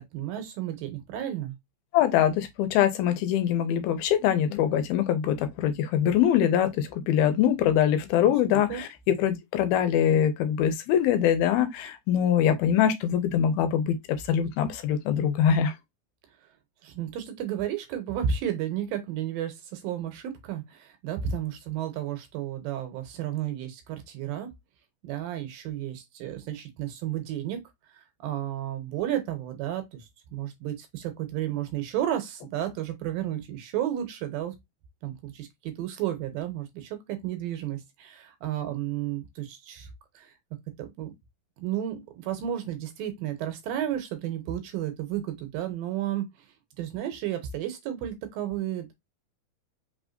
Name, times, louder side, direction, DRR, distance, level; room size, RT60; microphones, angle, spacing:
voice 1, 0.0-1.5 8.5-8.8 16.8-24.5 25.0-27.6 28.2-34.6 35.0-39.9 40.2-40.3 40.8-41.1 41.6-46.3 46.8-48.9, right 11 dB, 75° right, 2.5 m, -32 dB
voice 2, 1.9-8.9 9.2-14.0 14.3-15.7, left 9 dB, 90° left, 2.6 m, -23 dB
5.6 x 3.6 x 2.5 m
omnidirectional pair, 4.4 m